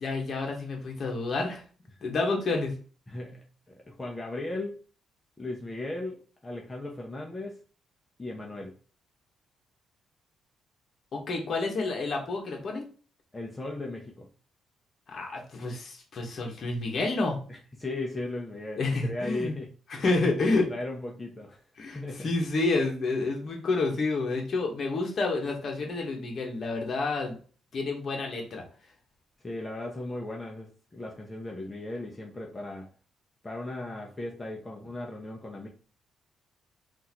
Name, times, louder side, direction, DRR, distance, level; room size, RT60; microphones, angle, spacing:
voice 1, 0.0-1.6 2.0-2.7 11.1-12.9 15.1-17.4 18.8-19.5 19.9-20.7 21.8-27.4 27.7-28.6, left 3 dB, 50° left, 1 dB, 1.1 m, -29 dB
voice 2, 3.1-4.8 5.4-7.6 8.2-8.8 13.3-14.3 17.5-19.7 20.4-21.6 21.9-22.3 29.4-32.9 33.4-35.7, left 2 dB, 20° left, -1 dB, 0.8 m, -37 dB
3.7 x 2.6 x 2.9 m, 0.39 s
cardioid pair, 90°, 0 cm